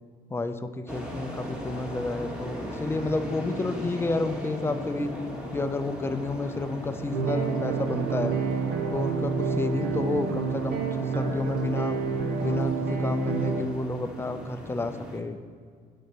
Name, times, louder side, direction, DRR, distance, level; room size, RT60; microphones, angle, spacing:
voice 1, 0.3-5.1 5.5-8.4 8.9-12.0 12.4-15.4, left 3 dB, 15° left, 10 dB, 0.4 m, -30 dB
sound 1, 0.9-15.2, equal, 5° right, 1.1 m, -38 dB
sound 2, 7.1-13.6, right 5 dB, 75° right, 0.8 m, -28 dB
7.8 x 4.1 x 6.4 m, 2.1 s
cardioid pair, 110°, 17 cm